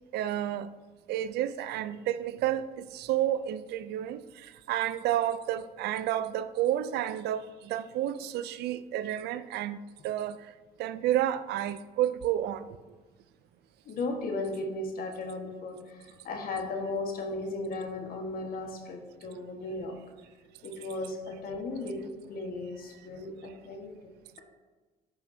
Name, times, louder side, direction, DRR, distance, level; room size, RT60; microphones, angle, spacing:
voice 1, 0.1-0.7 1.1-10.5 10.8-12.7, right 12 dB, 75° right, 0.4 m, -31 dB
voice 2, 13.8-20.0 20.6-24.1, left 2 dB, 60° left, 1.4 m, -36 dB
10.5 x 5.8 x 2.7 m
cardioid pair, 110°, 17 cm